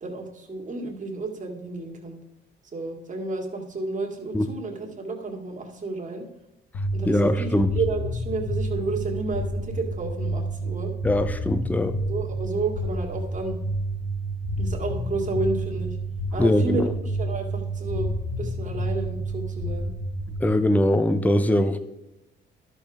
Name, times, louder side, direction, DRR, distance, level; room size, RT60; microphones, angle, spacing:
voice 1, 0.0-2.2 2.7-6.2 6.9-10.9 12.1-13.6 14.6-16.0 16.3-16.9 17.2-18.1 18.4-19.9, right 3 dB, 40° right, 1 dB, 2.2 m, -31 dB
sound 1, 6.7-20.5, right 1 dB, 75° left, 1.7 m, -29 dB
voice 2, 7.1-7.7 11.0-11.9 16.4-16.9 20.4-21.8, left 1 dB, 10° left, 10 dB, 0.7 m, -21 dB
12.0 x 6.7 x 3.6 m, 0.95 s
cardioid pair, 90°, 20 cm